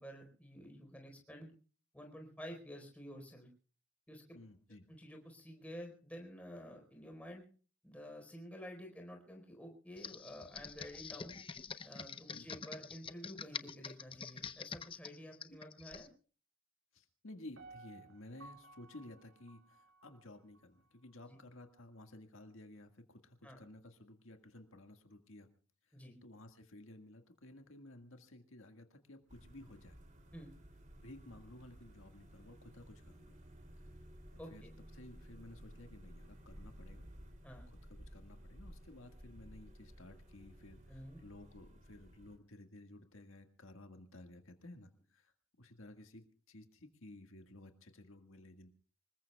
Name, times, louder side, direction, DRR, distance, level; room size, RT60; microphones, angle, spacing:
voice 1, 0.0-1.5 1.9-3.5 4.1-4.2 4.9-7.5 7.8-11.4 11.8-16.1 23.4-23.6 25.9-26.2 30.3-30.5 34.4-34.7 37.4-37.7 40.9-41.2, equal, 5° left, 2 dB, 4.3 m, -50 dB
voice 2, 4.3-4.9 12.3-12.6 16.9-25.5 25.8-30.0 31.0-33.4 34.3-34.6 34.9-37.1 37.7-45.3 45.6-48.7, left 1 dB, 80° left, 6 dB, 1.7 m, -55 dB
Computer keyboard, 10.0-16.1, left 6 dB, 25° left, 0.7 m, -46 dB
Piano, 17.6-20.6 21.1-21.2, right 3 dB, 85° right, 4.5 m, -58 dB
sound 1, 29.3-42.4, equal, 35° right, 2.8 m, -55 dB
26.0 x 21.0 x 2.3 m, 0.39 s
head